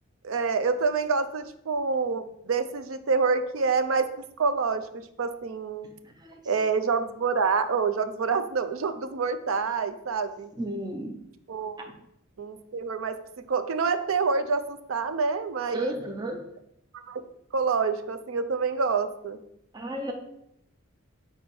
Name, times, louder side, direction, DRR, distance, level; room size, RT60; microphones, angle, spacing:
voice 1, 0.2-4.1 4.4-5.9 6.5-10.5 11.5-11.8 12.4-13.2 13.5-15.9 16.9-17.2 17.5-19.4, right 5 dB, 75° right, 11 dB, 0.5 m, -27 dB
voice 2, 6.0-6.4 10.6-11.2 11.8-11.9 15.7-16.4 19.7-20.1, right 1 dB, 20° right, 3 dB, 0.6 m, -33 dB
4.4 x 4.2 x 5.3 m, 0.77 s
head